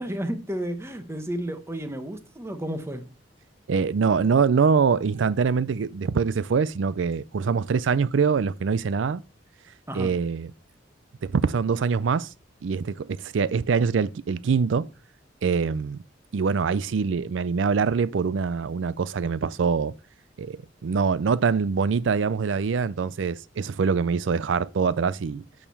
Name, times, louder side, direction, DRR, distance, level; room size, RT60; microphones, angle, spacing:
voice 1, 0.0-3.1 9.9-10.1, right 1 dB, 15° right, 1.1 m, -32 dB
voice 2, 3.7-9.2 9.9-10.5 11.2-12.3 12.6-14.9 15.4-16.0 16.3-19.9 20.4-25.4, right 5 dB, 80° right, 0.4 m, -24 dB
8.8 x 6.6 x 7.0 m
head